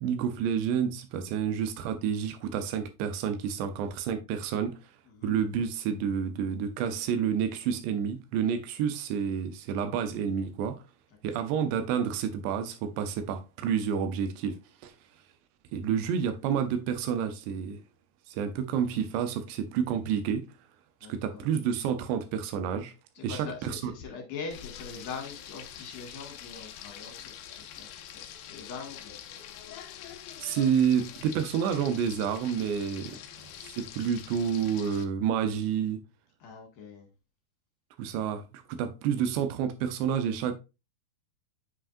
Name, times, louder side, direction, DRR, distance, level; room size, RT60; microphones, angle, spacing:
voice 1, 0.0-4.8 5.2-10.8 11.2-14.9 15.7-17.8 18.3-20.5 21.1-22.9 23.2-23.9 30.4-33.2 33.6-36.0 38.0-40.5, right 7 dB, 90° right, 3.0 m, -29 dB
voice 2, 21.0-21.5 23.2-27.9 28.1-29.2 33.4-33.6 36.4-37.1, left 5 dB, 60° left, 3.4 m, -42 dB
Frying (food), 24.5-35.0, left 10 dB, 80° left, 2.5 m, -45 dB
8.7 x 4.9 x 2.5 m
omnidirectional pair, 4.9 m